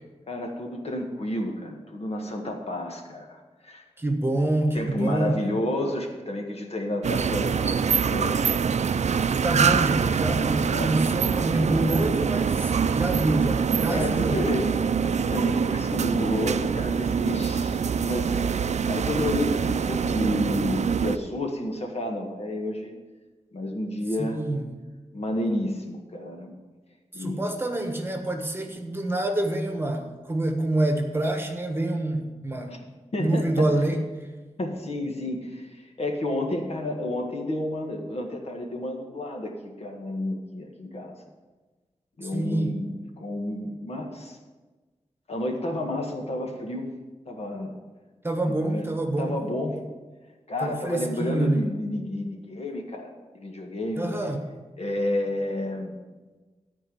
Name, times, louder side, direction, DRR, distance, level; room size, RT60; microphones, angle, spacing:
voice 1, 0.3-3.8 4.7-8.4 10.7-10.9 13.9-14.7 15.0-18.4 18.9-22.9 23.5-24.4 25.1-26.5 27.1-27.4 32.7-32.8 33.1-33.7 34.6-41.2 42.2-42.9 43.2-44.4 45.3-46.9 47.2-47.7 48.5-48.9 49.2-49.8 50.5-54.1 54.8-55.9, left 1 dB, 60° left, 2 dB, 1.7 m, -30 dB
voice 2, 4.0-5.4 9.4-14.5 24.2-24.7 27.1-32.7 33.2-34.0 42.2-42.8 48.2-49.4 50.6-51.7 53.9-54.4, right 1 dB, 20° right, 3 dB, 1.3 m, -27 dB
sound 1, 7.0-21.2, right 6 dB, 80° right, 0.4 m, -25 dB
13.5 x 4.6 x 7.7 m, 1.3 s
wide cardioid pair, 115°, 12 cm